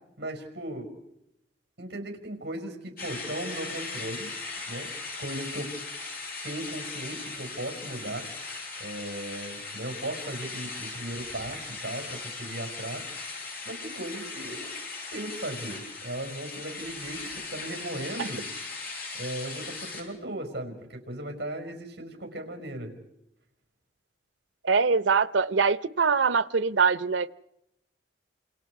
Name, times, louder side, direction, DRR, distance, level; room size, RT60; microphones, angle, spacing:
voice 1, 0.2-0.9 1.8-4.3 4.6-4.9 5.2-5.7 6.4-8.3 8.8-13.1 13.6-14.7 15.1-18.5 19.2-22.9, right 1 dB, 60° right, 5.4 m, -37 dB
sound 1, 3.0-20.0, left 4 dB, 50° left, 7.8 m, -38 dB
voice 2, 24.6-27.3, right 5 dB, 90° right, 0.8 m, -23 dB
29.0 x 27.0 x 4.8 m
head